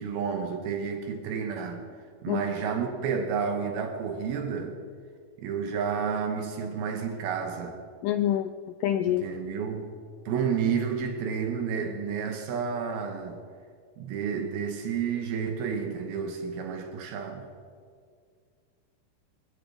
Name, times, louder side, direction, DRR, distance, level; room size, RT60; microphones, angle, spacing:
voice 1, 0.0-1.9 2.2-4.8 5.4-7.8 9.1-9.9 10.3-13.4 14.0-17.5, right 6 dB, 80° right, 4 dB, 3.1 m, -30 dB
voice 2, 8.0-8.5 8.8-9.2, left 11 dB, 85° left, 9 dB, 1.9 m, -25 dB
25.5 x 15.5 x 3.4 m, 2.1 s
omnidirectional pair, 4.3 m